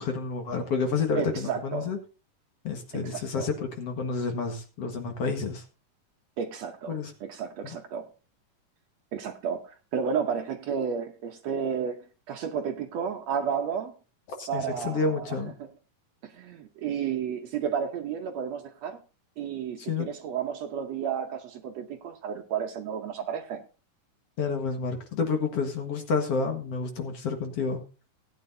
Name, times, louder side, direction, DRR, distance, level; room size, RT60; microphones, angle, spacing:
voice 1, 0.0-2.0 2.6-5.6 6.9-7.1 14.4-15.5 19.8-20.1 24.4-27.8, left 4 dB, 55° left, 2.3 m, -29 dB
voice 2, 1.2-1.9 3.0-3.5 6.4-8.1 9.1-13.9 14.5-15.4 16.2-19.0 19.4-23.6, right 7 dB, 65° right, 1.9 m, -32 dB
18.0 x 9.7 x 2.7 m
omnidirectional pair, 3.7 m